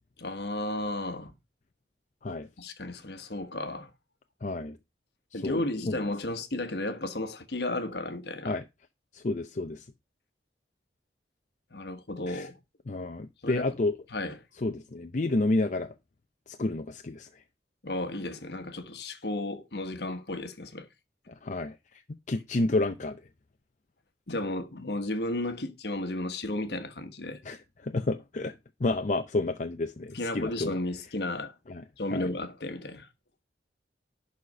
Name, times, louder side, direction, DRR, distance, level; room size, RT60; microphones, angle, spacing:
voice 1, 0.2-1.3 2.6-3.9 5.3-8.6 11.7-12.6 13.4-13.7 14.1-14.4 17.8-20.9 24.3-27.4 30.1-31.5 32.0-33.1, left 2 dB, 65° left, 1.3 m, -33 dB
voice 2, 4.4-4.8 5.4-6.0 8.4-8.6 9.1-9.8 12.3-12.5 12.9-14.0 14.6-15.9 16.5-17.3 21.3-21.7 22.3-23.2 27.5-27.6 27.8-28.6 28.8-30.7 31.7-31.8 32.1-32.3, left 2 dB, 45° left, 0.6 m, -30 dB
11.5 x 4.2 x 5.4 m
head